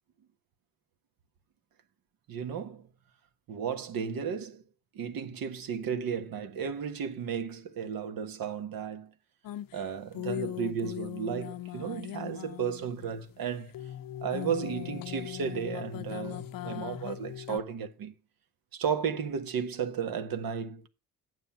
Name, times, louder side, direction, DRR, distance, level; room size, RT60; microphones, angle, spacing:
voice 1, 2.3-2.9 3.5-4.6 4.9-9.1 9.7-13.7 14.2-18.1 18.7-20.9, right 7 dB, 65° right, 1.5 m, -34 dB
sound 1, 9.4-13.4 13.7-17.6, left 13 dB, 65° left, 0.7 m, -39 dB
9.7 x 7.7 x 5.8 m
cardioid pair, 95°, 37 cm